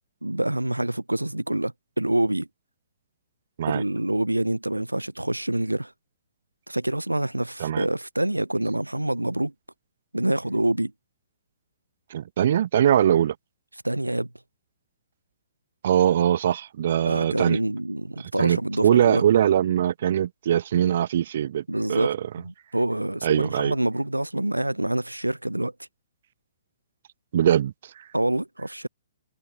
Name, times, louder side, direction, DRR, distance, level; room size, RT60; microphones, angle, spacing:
voice 1, 0.2-2.5 3.7-5.9 6.7-9.5 10.1-10.9 13.8-14.3 17.1-19.2 21.7-25.7 28.1-28.9, right 1 dB, 90° right, 6.7 m, -26 dB
voice 2, 12.1-13.3 15.8-17.6 18.2-21.6 21.9-22.2 23.2-23.7 27.3-27.7, right 10 dB, 50° right, 2.8 m, -22 dB
figure-of-eight pair, 125°, 0 cm